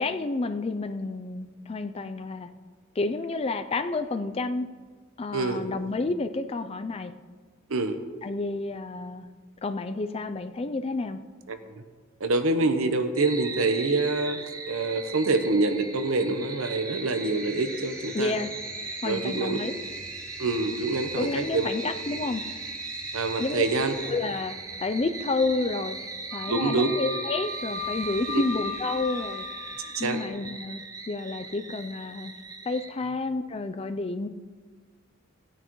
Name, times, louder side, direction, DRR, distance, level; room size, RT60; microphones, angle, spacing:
voice 1, 0.0-2.5 3.0-4.7 5.2-7.1 8.2-9.3 9.6-11.2 18.1-18.5 19.0-19.7 21.2-22.4 23.4-23.6 24.1-29.5 30.0-32.3 32.7-34.3, left 3 dB, 30° left, 9 dB, 0.4 m, -30 dB
voice 2, 5.3-5.7 7.7-8.0 11.5-11.8 12.2-18.3 19.0-19.6 20.4-21.7 22.1-22.3 23.1-23.9 26.5-26.9 28.3-28.4 29.9-30.2, right 3 dB, 85° right, 8 dB, 0.9 m, -26 dB
sound 1, 13.2-32.9, right 3 dB, 15° right, 0.6 m, -38 dB
sound 2, 16.0-30.4, right 1 dB, 5° left, 2.0 m, -47 dB
Wind instrument woodwind instrument, 26.3-29.9, left 5 dB, 50° right, 1.9 m, -36 dB
16.5 x 9.8 x 3.1 m, 1.5 s
head